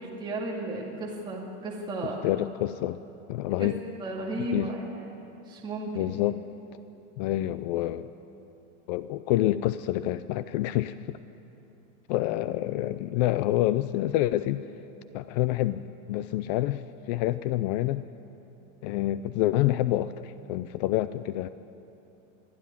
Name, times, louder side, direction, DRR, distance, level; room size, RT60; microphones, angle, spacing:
voice 1, 0.0-2.2 3.6-3.7 4.0-5.0 5.5-6.1, right 2 dB, 10° right, -4 dB, 2.3 m, -34 dB
voice 2, 2.2-3.0 3.3-3.8 4.5-4.7 6.0-6.4 7.2-8.1 8.9-11.2 12.1-14.6 15.1-18.0 18.8-21.5, left 14 dB, 35° left, 14 dB, 0.4 m, -27 dB
23.5 x 13.0 x 9.9 m, 2.9 s
supercardioid pair, 160°, 37 cm